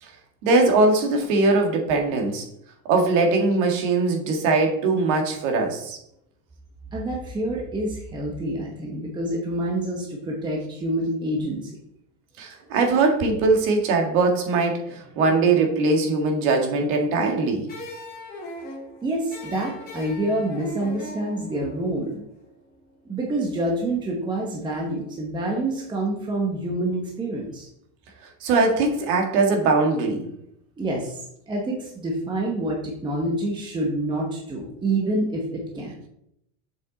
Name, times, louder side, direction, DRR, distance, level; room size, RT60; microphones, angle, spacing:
voice 1, 0.4-2.5 2.9-6.0 12.4-17.7 28.4-30.3, right 3 dB, 65° right, 3 dB, 1.8 m, -21 dB
voice 2, 6.9-11.7 19.0-22.2 23.1-27.7 30.8-31.2 31.5-36.0, right 1 dB, 10° right, -1 dB, 1.0 m, -27 dB
sound 1, 17.7-22.8, equal, 25° left, 2.2 m, -39 dB
7.1 x 5.9 x 3.9 m, 0.76 s
cardioid pair, 155°, 37 cm